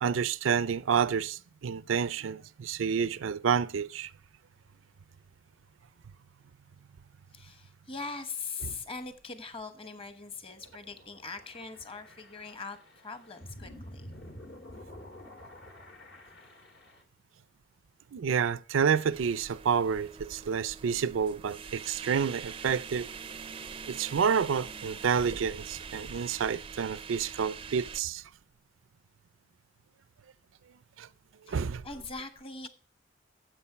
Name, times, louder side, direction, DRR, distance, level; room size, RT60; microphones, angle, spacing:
voice 1, 0.0-4.1 18.1-23.1 23.9-28.2 31.0-31.1 31.5-31.8, right 6 dB, 85° right, 0.4 m, -29 dB
voice 2, 7.3-14.1 31.5-32.7, left 4 dB, 30° left, 1.1 m, -41 dB
sound 1, 10.1-17.0, left 1 dB, 70° left, 2.3 m, -50 dB
sound 2, 19.1-28.0, right 6 dB, 30° right, 0.4 m, -44 dB
9.8 x 7.8 x 5.6 m
head